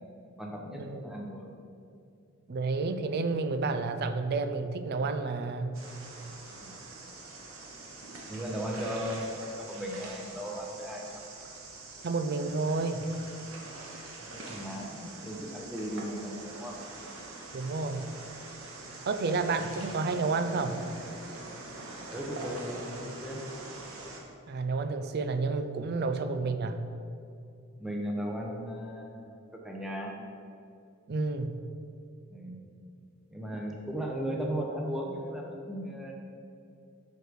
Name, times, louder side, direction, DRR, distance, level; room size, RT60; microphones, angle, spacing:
voice 1, 0.4-1.5 6.6-6.7 8.2-11.2 14.3-16.7 22.1-23.4 27.8-30.1 32.3-32.6 33.3-36.1, equal, ahead, -1 dB, 0.8 m, -36 dB
voice 2, 2.5-5.8 12.0-13.1 17.5-18.1 19.1-20.8 24.5-26.8 31.1-31.6, right 3 dB, 50° right, 9 dB, 0.4 m, -30 dB
sound 1, 5.7-24.2, right 2 dB, 80° right, 1.1 m, -44 dB
6.3 x 4.8 x 5.0 m, 2.6 s
head